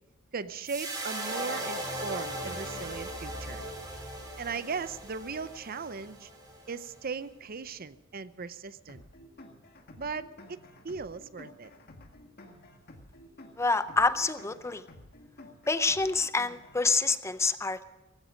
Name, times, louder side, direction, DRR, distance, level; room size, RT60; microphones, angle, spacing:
voice 1, 0.3-3.6 4.4-6.3 6.7-9.0 10.0-10.6 10.8-11.7, right 5 dB, 45° right, 15 dB, 0.6 m, -38 dB
sound 1, 0.7-7.0, right 1 dB, 20° right, 3.6 m, -38 dB
sound 2, 8.9-16.9, left 1 dB, 50° left, 1.8 m, -52 dB
voice 2, 13.6-14.8 15.7-17.8, left 3 dB, 15° left, 13 dB, 0.5 m, -27 dB
17.5 x 15.5 x 5.1 m, 1.1 s
head